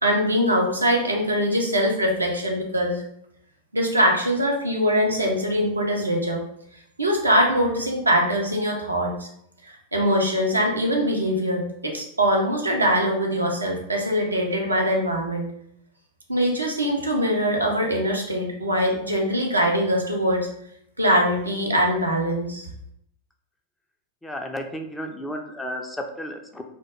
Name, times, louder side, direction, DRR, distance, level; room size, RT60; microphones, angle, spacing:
voice 1, 0.0-3.0 3.7-6.4 7.0-9.3 9.7-15.5 16.3-20.5 21.0-22.7, equal, 80° right, 0 dB, 0.5 m, -22 dB
voice 2, 24.2-26.6, equal, 5° left, 3 dB, 0.3 m, -33 dB
2.1 x 2.1 x 2.9 m, 0.71 s
figure-of-eight pair, 90°, 0 cm